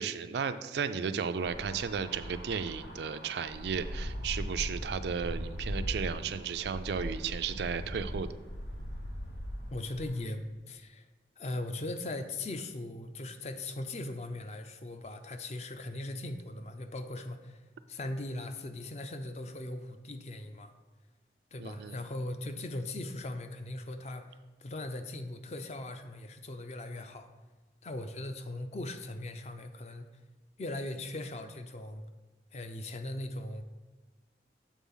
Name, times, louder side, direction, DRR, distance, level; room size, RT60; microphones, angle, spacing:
voice 1, 0.0-8.3 21.6-22.0, right 6 dB, 70° right, 11 dB, 0.4 m, -34 dB
sound 1, 1.4-10.2, equal, 80° left, 1.0 m, -39 dB
voice 2, 9.7-11.1 11.4-20.7 21.5-27.3 27.8-30.1 30.6-32.0 32.5-33.6, left 2 dB, 40° left, 9 dB, 0.4 m, -39 dB
7.3 x 3.8 x 5.5 m, 1.2 s
head